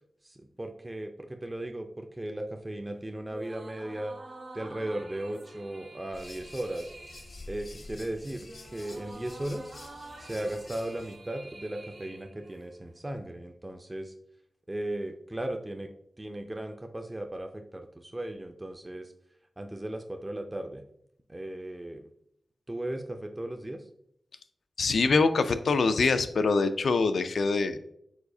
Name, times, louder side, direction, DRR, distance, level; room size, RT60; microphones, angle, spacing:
voice 1, 0.2-4.2 4.5-6.9 7.5-9.8 10.2-14.1 14.7-19.1 19.6-20.8 21.3-22.0 22.7-23.9, right 1 dB, 20° right, 4 dB, 0.4 m, -36 dB
sound 1, 3.2-13.0, right 2 dB, 80° right, 1.6 m, -48 dB
sound 2, 6.1-11.2, left 2 dB, 55° left, 0.7 m, -48 dB
voice 2, 24.8-27.8, left 4 dB, 80° left, 10 dB, 0.3 m, -24 dB
4.8 x 4.0 x 2.6 m, 0.72 s
wide cardioid pair, 65°, 0 cm